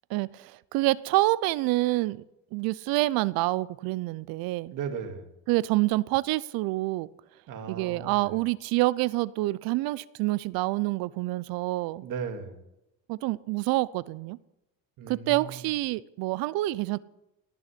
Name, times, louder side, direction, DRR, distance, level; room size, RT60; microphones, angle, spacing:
voice 1, 0.1-2.2 2.5-4.7 5.5-7.1 7.7-12.1 13.1-14.4 15.1-17.0, right 19 dB, 85° right, 20 dB, 0.7 m, -27 dB
voice 2, 4.7-5.3 7.5-8.3 12.0-12.6 15.0-15.6, right 6 dB, 65° right, 6 dB, 2.4 m, -36 dB
18.0 x 7.1 x 9.9 m, 0.89 s
cardioid pair, 130°, 35 cm